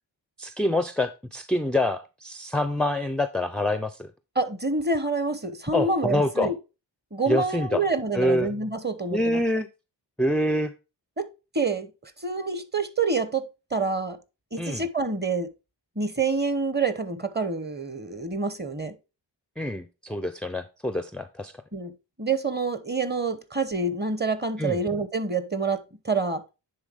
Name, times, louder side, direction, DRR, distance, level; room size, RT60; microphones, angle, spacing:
voice 1, 0.4-4.1 5.7-6.5 7.3-7.8 8.1-8.5 9.1-9.7 10.2-10.7 14.6-14.8 19.6-21.5 24.6-24.8, left 1 dB, ahead, 0.4 m, -26 dB
voice 2, 4.4-6.6 7.1-9.4 11.2-11.3 11.5-14.2 14.5-15.5 16.0-18.9 21.7-21.9 22.2-26.4, right 3 dB, 20° right, 0.9 m, -27 dB
9.7 x 3.6 x 3.5 m
cardioid pair, 60°, 45 cm